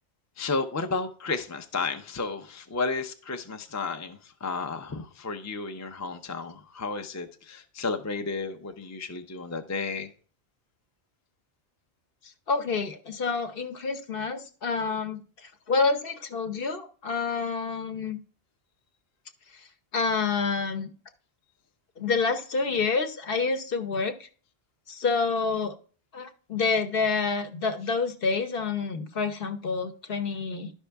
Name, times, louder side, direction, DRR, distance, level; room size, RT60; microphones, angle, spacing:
voice 1, 0.4-10.1, left 4 dB, 20° left, 0.5 m, -32 dB
voice 2, 12.5-18.2 19.9-20.9 22.0-24.3 24.9-25.7 26.1-30.7, left 4 dB, 55° left, 1.0 m, -28 dB
11.5 x 5.4 x 3.4 m
omnidirectional pair, 1.2 m